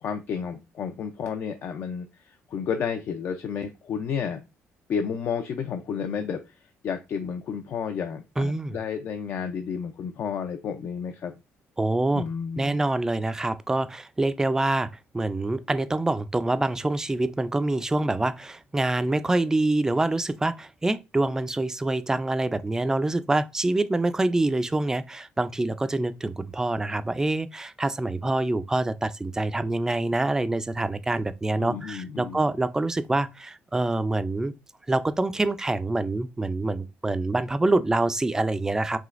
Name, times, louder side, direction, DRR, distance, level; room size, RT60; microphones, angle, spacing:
voice 1, 0.0-4.4 4.9-11.3 12.1-12.8 31.6-32.4, left 7 dB, 60° left, 0.5 m, -31 dB
voice 2, 8.4-8.8 11.8-12.2 12.6-34.5 34.9-39.0, right 2 dB, 10° right, 0.4 m, -26 dB
4.9 x 3.3 x 2.5 m
cardioid pair, 120°, 5 cm